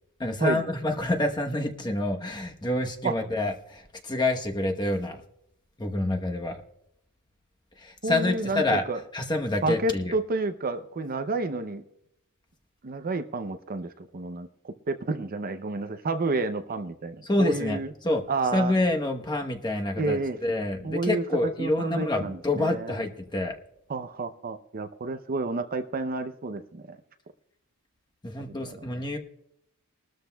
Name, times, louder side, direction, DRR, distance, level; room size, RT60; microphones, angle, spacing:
voice 1, 0.2-5.2 5.8-6.6 7.8-8.8 9.1-10.1 17.2-18.2 18.5-23.6 28.2-29.2, left 2 dB, 20° left, 3 dB, 1.0 m, -27 dB
voice 2, 8.0-9.0 9.6-11.8 12.8-17.9 18.3-18.7 20.0-20.4 20.8-21.2 21.6-23.0 23.9-27.0 28.7-28.8, right 3 dB, 40° right, 9 dB, 0.6 m, -30 dB
21.5 x 13.0 x 2.3 m, 0.79 s
head